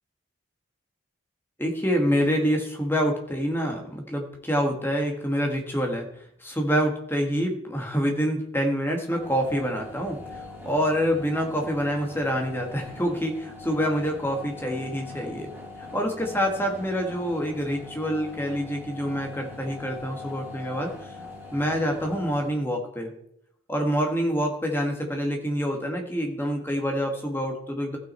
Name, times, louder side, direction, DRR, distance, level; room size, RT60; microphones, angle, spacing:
voice 1, 1.6-6.1 6.4-15.5 15.8-21.1 21.5-23.1 23.7-28.0, equal, 10° left, 2 dB, 1.6 m, -26 dB
sound 1, 9.0-22.6, left 2 dB, 10° right, 3.5 m, -42 dB
15.0 x 6.1 x 4.4 m, 0.73 s
head